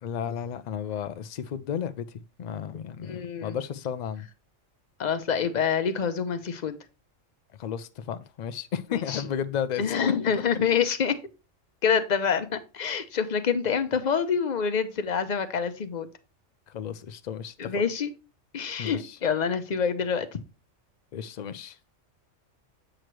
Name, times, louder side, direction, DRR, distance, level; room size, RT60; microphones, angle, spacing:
voice 1, 0.0-2.1 2.4-4.3 7.6-9.8 16.7-17.5 18.8-19.2 21.1-21.8, left 8 dB, 85° left, 0.3 m, -33 dB
voice 2, 3.0-3.6 5.0-6.8 8.9-9.3 9.8-11.2 11.8-16.1 17.6-18.1 18.5-20.4, left 6 dB, 45° left, 0.7 m, -26 dB
7.7 x 6.3 x 3.1 m
omnidirectional pair, 1.3 m